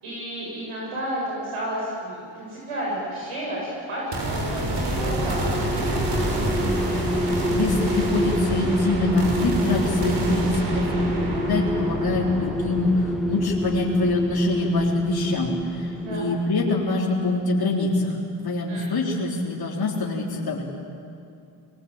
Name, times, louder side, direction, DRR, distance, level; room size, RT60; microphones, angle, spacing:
voice 1, 0.0-6.0 16.0-16.3 18.7-18.9, right 1 dB, 80° right, -4 dB, 7.7 m, -32 dB
sound 1, 4.1-15.5, right 1 dB, 55° right, 5.4 m, -28 dB
sound 2, 4.8-16.8, equal, ahead, 0.9 m, -27 dB
voice 2, 7.5-10.8 11.1-18.1 18.4-20.6, left 2 dB, 45° left, -3 dB, 3.9 m, -25 dB
21.5 x 21.0 x 9.0 m, 2.5 s
supercardioid pair, 60°, 50 cm